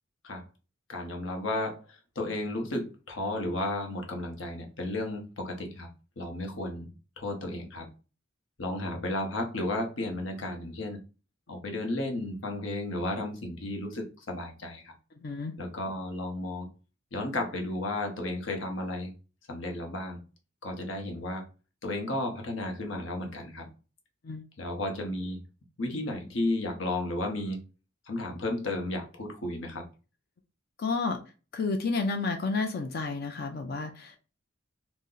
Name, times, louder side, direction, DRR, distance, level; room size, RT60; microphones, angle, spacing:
voice 1, 0.9-5.9 6.2-7.9 8.6-11.0 11.5-14.9 15.6-16.7 17.1-19.1 19.5-20.2 20.6-21.5 21.8-23.7 24.6-25.4 25.8-27.6 28.1-29.8, left 1 dB, 75° left, 3 dB, 0.9 m, -33 dB
voice 2, 15.2-15.5 24.2-24.4 30.8-31.2 31.5-34.2, left 3 dB, 50° left, 4 dB, 0.4 m, -31 dB
2.8 x 2.0 x 3.7 m, 0.33 s
head